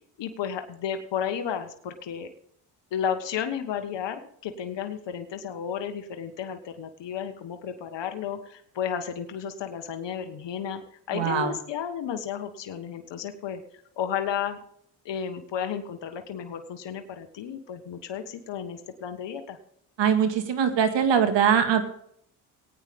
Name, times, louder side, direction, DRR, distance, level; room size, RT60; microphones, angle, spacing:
voice 1, 0.2-2.3 2.9-10.8 11.1-13.6 14.0-14.6 15.0-19.6, left 8 dB, 65° left, 7 dB, 1.5 m, -33 dB
voice 2, 11.1-11.5 20.0-21.8, right 7 dB, 70° right, 8 dB, 2.1 m, -22 dB
18.5 x 9.2 x 3.6 m, 0.68 s
supercardioid pair, 65°, 46 cm